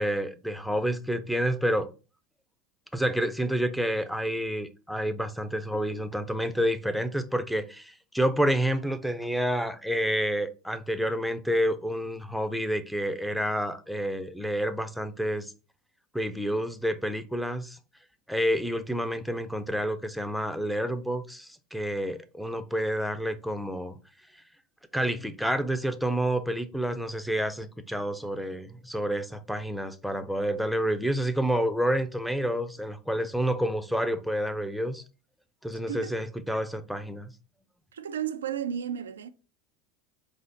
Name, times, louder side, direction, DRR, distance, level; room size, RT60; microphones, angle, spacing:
voice 1, 0.0-1.9 2.9-15.5 16.1-17.8 18.3-24.0 24.9-35.0 35.6-37.3, equal, ahead, 0.5 m, -29 dB
voice 2, 35.9-36.2 37.9-39.3, right 9 dB, 90° right, 0.3 m, -33 dB
5.0 x 2.0 x 4.0 m
hypercardioid pair, 85°, 0 cm